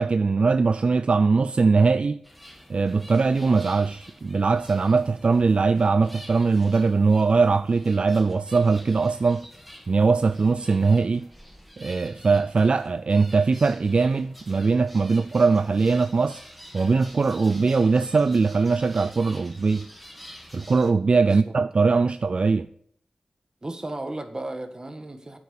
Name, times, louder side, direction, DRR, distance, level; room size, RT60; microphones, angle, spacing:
voice 1, 0.0-2.2 2.7-9.5 9.9-11.3 11.8-16.4 16.7-19.9 20.5-22.7, right 4 dB, 60° right, 0.4 m, -21 dB
sound 1, 2.2-20.9, equal, ahead, 2.0 m, -48 dB
voice 2, 23.6-25.4, right 2 dB, 35° right, 1.9 m, -34 dB
8.9 x 8.4 x 7.1 m
cardioid pair, 45°, 2 cm